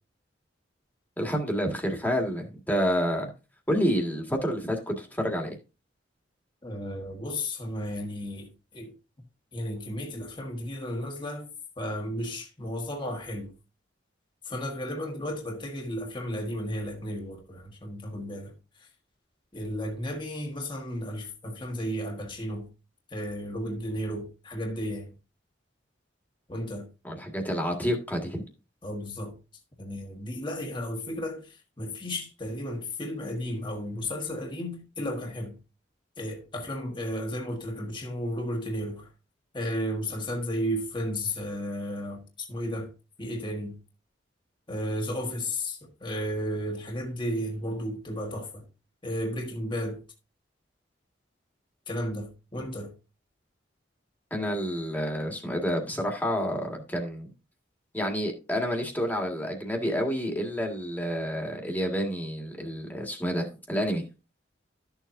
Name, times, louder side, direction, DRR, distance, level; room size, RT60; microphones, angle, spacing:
voice 1, 1.2-3.3 3.7-5.6 27.0-28.4 54.3-57.3 57.9-64.1, equal, 10° left, 1.8 m, -29 dB
voice 2, 6.6-8.9 9.5-11.5 11.8-13.5 14.4-18.5 19.5-22.7 23.1-25.1 26.5-26.9 28.8-29.4 29.8-35.6 36.2-39.1 39.5-42.2 42.5-42.9 43.2-43.7 44.7-48.6 49.0-50.0 51.9-52.9, equal, 25° left, 1.5 m, -33 dB
13.0 x 7.2 x 2.7 m
head